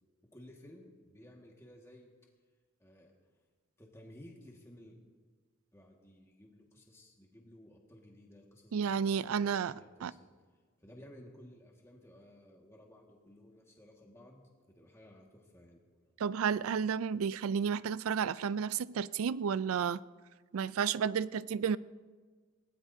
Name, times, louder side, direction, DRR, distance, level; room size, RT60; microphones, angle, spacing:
voice 1, 0.3-2.1 2.8-3.1 3.8-5.0 5.7-10.3 10.8-16.1, left 1 dB, 10° left, 1.7 m, -56 dB
voice 2, 8.7-9.7 10.0-10.1 16.2-20.0 20.5-21.8, right 7 dB, 85° right, 0.4 m, -32 dB
21.0 x 17.5 x 2.7 m
head